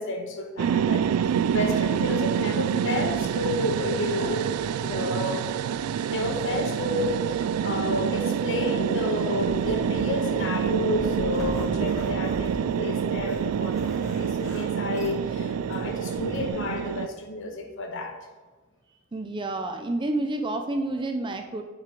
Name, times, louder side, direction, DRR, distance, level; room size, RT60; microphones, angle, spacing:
voice 1, 0.0-4.5 4.8-5.4 6.1-18.2, left 1 dB, 60° left, 4 dB, 1.1 m, -31 dB
sound 1, 0.6-17.1, right 8 dB, 85° right, 0.3 m, -27 dB
Zipper (clothing), 9.2-16.5, equal, 15° left, 2.6 m, -39 dB
voice 2, 19.1-21.6, right 2 dB, 20° right, 5 dB, 0.4 m, -29 dB
9.1 x 5.6 x 3.8 m, 1.3 s
head